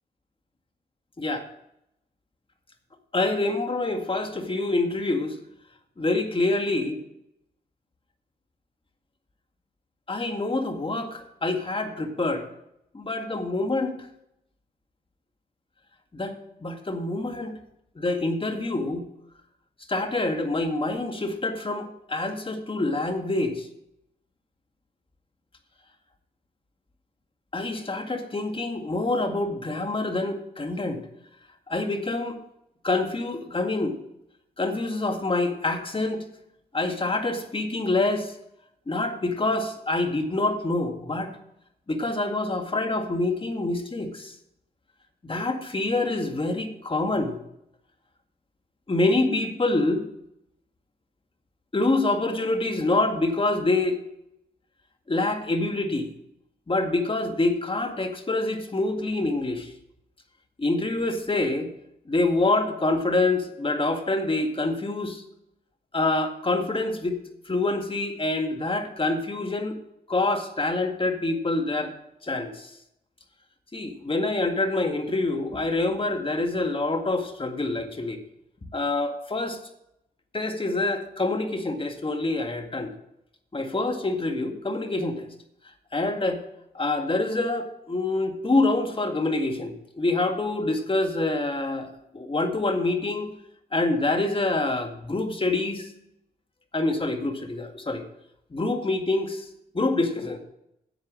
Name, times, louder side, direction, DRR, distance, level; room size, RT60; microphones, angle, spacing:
voice 1, 3.1-5.4 6.0-6.9 10.1-12.5 12.9-14.0 16.1-17.6 18.0-19.1 19.9-23.7 27.5-31.0 31.7-32.4 32.8-34.0 34.6-36.2 36.7-38.3 38.9-41.3 41.9-44.4 45.2-47.4 48.9-50.0 51.7-54.0 55.1-56.1 56.7-59.7 60.6-61.7 62.1-65.2 65.9-67.2 67.5-69.8 70.1-71.9 72.2-72.7 73.7-78.2 78.7-79.6 80.3-82.9 83.5-85.3 85.9-86.4 86.7-93.3 93.7-95.9 96.7-98.0 98.5-99.5 99.7-100.4, left 2 dB, 30° left, 6 dB, 1.9 m, -26 dB
10.5 x 8.1 x 6.3 m, 0.80 s
cardioid pair, 60°, 18 cm